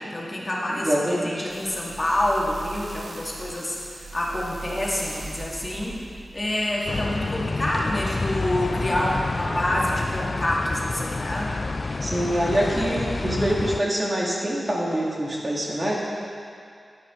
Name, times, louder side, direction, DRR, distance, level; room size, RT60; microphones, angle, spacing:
voice 1, 0.0-6.0 6.3-11.6, left 1 dB, 30° left, -4 dB, 2.0 m, -27 dB
voice 2, 0.7-1.5 12.0-16.0, right 1 dB, 35° right, -4 dB, 2.1 m, -25 dB
sound 1, 1.5-8.0 8.5-8.6, right 3 dB, 50° right, 0.7 m, -41 dB
sound 2, 6.9-13.8, left 3 dB, 50° left, 0.3 m, -29 dB
11.0 x 9.7 x 3.7 m, 2.4 s
cardioid pair, 60°, 0 cm